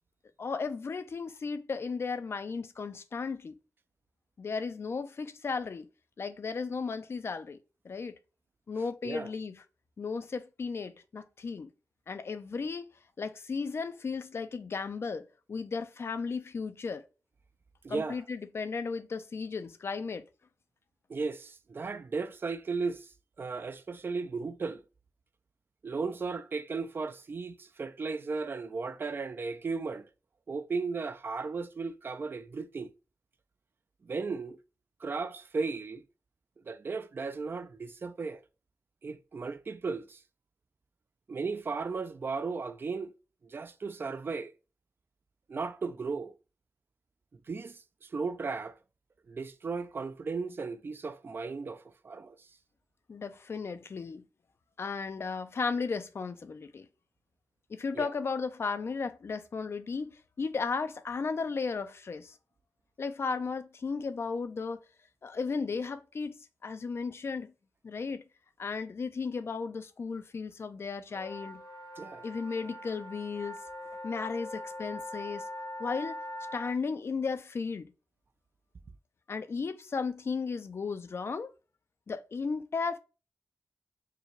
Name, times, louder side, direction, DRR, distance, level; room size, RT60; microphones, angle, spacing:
voice 1, 0.4-3.5 4.4-5.9 6.2-7.6 7.8-8.2 8.7-9.6 10.0-11.7 12.1-12.8 13.2-17.0 17.9-20.2 53.1-54.2 54.8-56.9 57.7-62.3 63.0-64.8 65.2-67.5 67.8-68.2 68.6-71.6 72.2-73.6 74.0-75.5 75.8-76.2 76.5-77.9 79.3-81.5 82.1-83.0, left 4 dB, 45° left, 0.4 m, -35 dB
voice 2, 17.8-18.2 21.1-23.1 23.4-24.8 25.8-30.0 30.5-32.9 34.0-34.6 35.0-36.0 36.7-38.4 39.0-40.2 41.3-43.1 43.4-44.5 45.5-46.3 47.5-48.8 49.3-52.4 57.9-58.1 72.0-72.2, right 4 dB, 40° right, 0.4 m, -35 dB
sound 1, 71.1-76.7, left 1 dB, 90° left, 1.3 m, -42 dB
4.7 x 2.2 x 3.1 m
wide cardioid pair, 165°, 6 cm